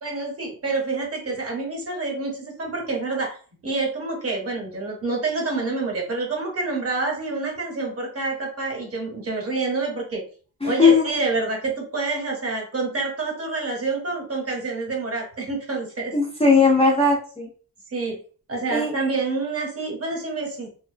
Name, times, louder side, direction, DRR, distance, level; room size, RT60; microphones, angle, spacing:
voice 1, 0.0-3.4 3.6-10.2 10.6-16.1 17.9-18.2 18.5-20.7, right 3 dB, 40° right, 0 dB, 0.8 m, -27 dB
voice 2, 10.6-11.0 16.1-17.5 18.7-18.9, left 4 dB, 15° left, -4 dB, 0.4 m, -18 dB
2.5 x 2.1 x 2.5 m, 0.42 s
wide cardioid pair, 160°, 38 cm